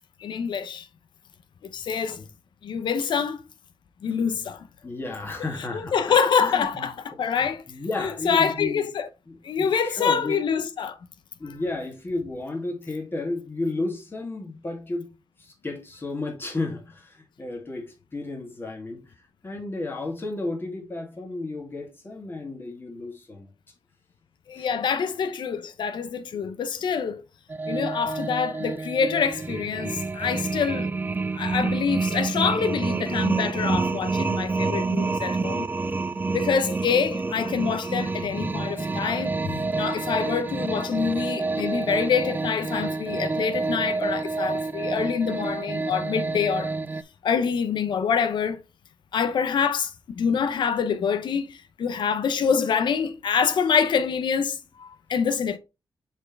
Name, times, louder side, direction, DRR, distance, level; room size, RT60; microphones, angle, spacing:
voice 1, 0.2-0.9 1.6-2.2 2.6-3.4 4.0-4.7 5.7-7.6 8.0-9.1 9.4-11.0 24.5-27.2 27.7-30.9 31.3-35.7 36.3-46.7 47.2-48.6 49.1-55.6, left 6 dB, 75° left, 0.8 m, -26 dB
voice 2, 4.8-6.0 6.4-6.7 7.7-8.9 9.3-10.4 11.4-15.1 15.4-19.0 19.4-23.5 24.6-24.7 26.3-26.4 36.8-37.0, left 2 dB, 30° left, 2.4 m, -32 dB
sound 1, 27.5-47.0, right 3 dB, 25° right, 0.5 m, -28 dB
7.1 x 4.3 x 3.3 m
wide cardioid pair, 110°, 8 cm